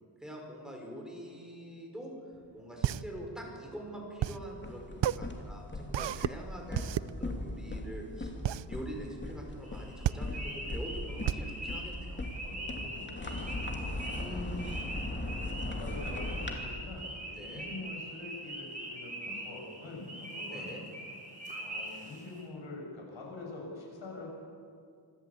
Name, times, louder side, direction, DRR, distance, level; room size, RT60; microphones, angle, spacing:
voice 1, 0.2-2.1 2.5-8.3 8.7-12.2 14.1-14.7 17.3-17.7 20.5-20.8, equal, ahead, 0 dB, 5.4 m, -44 dB
sound 1, 2.3-12.7, right 12 dB, 65° right, 0.6 m, -34 dB
sound 2, 4.4-16.5, left 1 dB, 25° left, 2.7 m, -39 dB
sound 3, 9.6-22.4, right 1 dB, 15° right, 6.3 m, -42 dB
voice 2, 12.4-14.8 15.1-20.7 21.6-24.3, left 2 dB, 75° left, -1 dB, 7.3 m, -45 dB
26.0 x 13.5 x 8.7 m, 2.3 s
wide cardioid pair, 115°, 46 cm